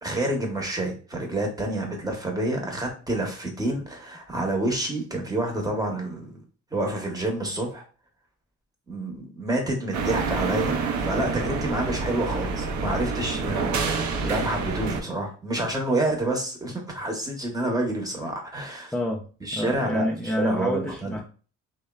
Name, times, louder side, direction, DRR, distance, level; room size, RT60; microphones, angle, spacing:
voice 1, 0.0-6.4 6.7-7.8 8.9-18.9 19.4-21.2, right 1 dB, 10° right, 1 dB, 0.8 m, -28 dB
sound 1, 9.9-15.0, right 4 dB, 70° right, 0.5 m, -28 dB
voice 2, 11.1-11.4 12.1-12.6 13.3-13.6 15.6-15.7 16.7-16.8 18.9-19.2 19.5-21.2, left 1 dB, 5° left, 0 dB, 0.3 m, -30 dB
3.0 x 2.0 x 2.2 m, 0.37 s
cardioid pair, 90°, 30 cm